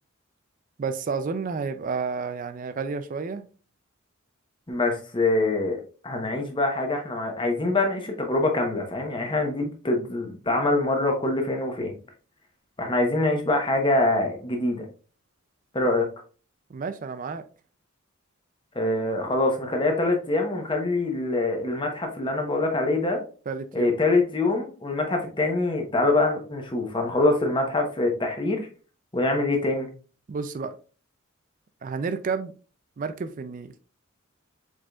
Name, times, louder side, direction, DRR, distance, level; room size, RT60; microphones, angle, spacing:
voice 1, 0.8-3.4 16.7-17.4 23.5-23.9 30.3-30.8 31.8-32.5 33.0-33.8, right 5 dB, 40° right, 0.4 m, -31 dB
voice 2, 4.7-11.9 12.8-14.8 15.7-16.1 18.7-23.2 23.7-28.7 29.1-29.9, left 2 dB, 25° left, 0.9 m, -24 dB
4.9 x 3.9 x 2.4 m
head